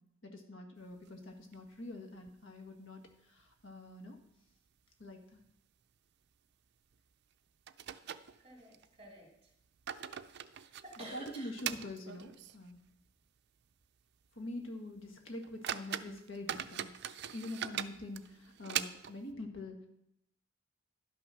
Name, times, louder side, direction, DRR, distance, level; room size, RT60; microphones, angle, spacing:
voice 1, 0.2-3.0 3.3-4.2 5.0-5.4 11.0-12.8 14.4-16.9 17.3-19.8, left 1 dB, 70° left, 3 dB, 1.8 m, -45 dB
sound 1, 0.9-1.9 2.2-2.3 2.7-2.8 3.4-3.9 4.2-4.3 4.9-5.1 5.4-5.6 6.9-7.0 7.7-8.9 9.5-12.7 13.1-13.2 13.7-13.8 14.3-14.4 15.0-15.1 15.4-19.3, right 10 dB, 55° right, 0.4 m, -42 dB
voice 2, 8.4-9.5 10.5-11.5, right 2 dB, 30° right, 0 dB, 2.7 m, -52 dB
11.5 x 6.1 x 5.8 m, 0.79 s
head